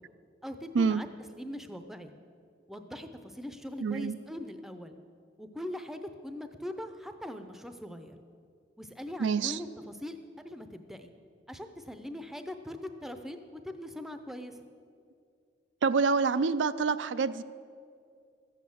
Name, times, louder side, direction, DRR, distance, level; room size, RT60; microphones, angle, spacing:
voice 1, 0.4-1.1 1.4-2.1 2.7-5.0 5.4-8.2 8.8-11.1 11.5-14.6, left 1 dB, ahead, 8 dB, 0.6 m, -41 dB
voice 2, 3.8-4.1 9.2-9.6 15.8-17.4, right 5 dB, 80° right, 13 dB, 0.4 m, -27 dB
13.5 x 8.6 x 7.2 m, 2.3 s
head